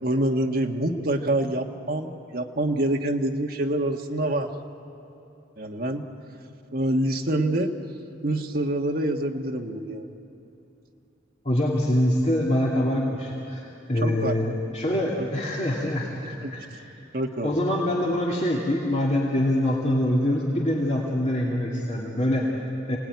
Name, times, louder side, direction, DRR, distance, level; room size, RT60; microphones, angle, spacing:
voice 1, 0.0-4.5 5.6-6.0 6.7-7.7 8.2-10.1 14.0-14.3 15.2-15.3 16.4-16.5 17.1-17.5, right 1 dB, 50° right, 3 dB, 1.4 m, -26 dB
voice 2, 11.4-16.1 16.4-16.9 17.4-23.0, left 1 dB, 35° left, -3 dB, 2.4 m, -25 dB
28.5 x 19.0 x 9.4 m, 2.9 s
head